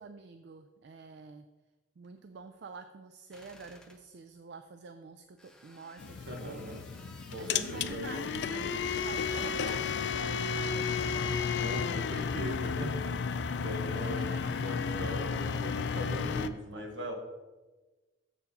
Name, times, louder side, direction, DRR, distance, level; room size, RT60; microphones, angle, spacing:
voice 1, 0.0-1.4 2.0-6.8 7.4-11.6 14.0-14.5, right 5 dB, 60° right, 8 dB, 0.4 m, -48 dB
sound 1, 3.3-4.0 5.4-8.2 8.8-9.7, left 1 dB, 5° left, 0.7 m, -57 dB
sound 2, 6.0-16.5, left 6 dB, 65° left, 0.4 m, -33 dB
voice 2, 6.3-8.7 11.6-17.1, equal, 85° right, 3 dB, 1.3 m, -40 dB
7.3 x 4.7 x 5.3 m, 1.2 s
head